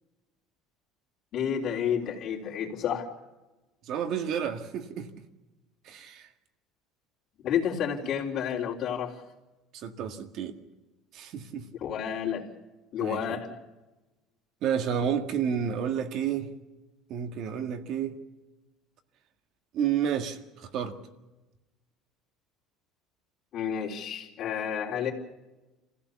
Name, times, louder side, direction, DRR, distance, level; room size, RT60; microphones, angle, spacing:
voice 1, 1.3-3.1 7.4-9.1 11.8-12.4 12.9-13.5 23.5-25.1, left 8 dB, 45° left, -2 dB, 3.7 m, -30 dB
voice 2, 3.9-5.1 5.8-6.3 9.7-10.6 11.1-11.7 13.0-13.4 14.6-16.5 17.1-18.2 19.7-21.0, right 8 dB, 50° right, 7 dB, 1.9 m, -30 dB
26.5 x 16.0 x 7.2 m, 1.1 s
cardioid pair, 155°, 0 cm